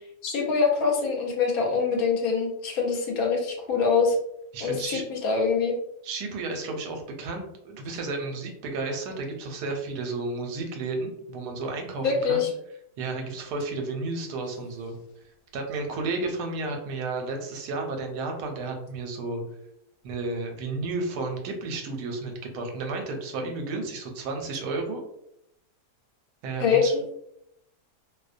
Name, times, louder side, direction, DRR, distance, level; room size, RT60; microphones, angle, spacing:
voice 1, 0.2-4.2 4.6-5.8 12.0-12.5 26.6-27.2, left 5 dB, 70° left, 1 dB, 1.0 m, -24 dB
voice 2, 4.5-5.0 6.0-12.4 13.0-14.9 15.5-19.4 20.0-25.0 26.4-26.9, right 3 dB, 85° right, 3 dB, 1.2 m, -32 dB
2.7 x 2.1 x 2.4 m, 0.77 s
omnidirectional pair, 1.7 m